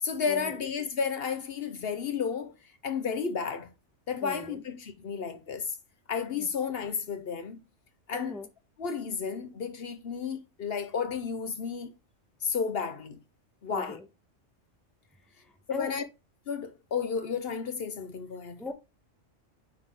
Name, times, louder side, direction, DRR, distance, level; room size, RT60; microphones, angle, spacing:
voice 1, 0.0-2.5 2.8-3.7 4.1-5.7 6.1-7.6 8.1-8.4 8.8-11.9 12.4-13.2 13.6-14.0 15.7-16.0 16.5-18.6, left 6 dB, 55° left, 0.9 m, -32 dB
voice 2, 4.2-4.6 6.4-6.5 8.1-8.5 13.7-14.0 15.4-15.9 18.6-18.7, left 2 dB, ahead, 0.8 m, -39 dB
9.1 x 3.5 x 3.6 m
omnidirectional pair, 1.3 m